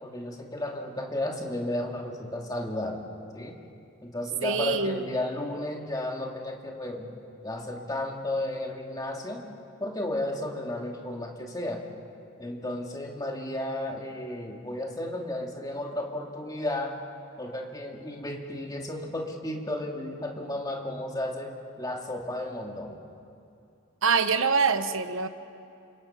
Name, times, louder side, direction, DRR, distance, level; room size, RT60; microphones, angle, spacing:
voice 1, 0.0-3.1 3.3-3.6 4.0-7.2 7.4-9.4 9.8-11.8 12.4-17.0 17.4-23.0, left 1 dB, 15° left, 0 dB, 2.4 m, -33 dB
voice 2, 4.4-5.1 24.0-25.3, right 5 dB, 65° right, 10 dB, 1.1 m, -25 dB
30.0 x 26.5 x 5.8 m, 2.6 s
head